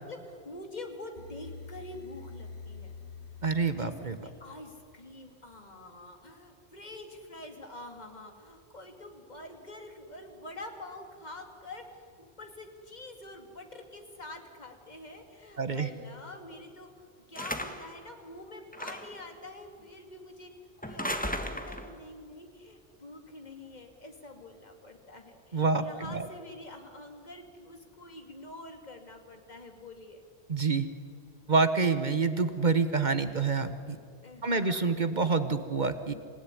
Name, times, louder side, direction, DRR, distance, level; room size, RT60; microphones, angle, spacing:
voice 1, 0.0-3.0 3.7-3.9 4.2-11.8 12.2-20.5 20.8-30.2 34.2-34.8, left 2 dB, 40° left, 4 dB, 2.7 m, -46 dB
sound 1, 1.2-5.2, left 5 dB, 80° left, 1.4 m, -47 dB
voice 2, 3.4-4.2 15.6-15.9 25.5-26.3 30.5-30.9 31.5-34.0 34.4-36.1, right 4 dB, 45° right, 10 dB, 1.3 m, -27 dB
sound 2, 17.3-18.0 18.7-19.2 20.8-21.9, left 1 dB, 10° left, 1.5 m, -35 dB
27.5 x 17.0 x 9.8 m, 2.2 s
omnidirectional pair, 1.1 m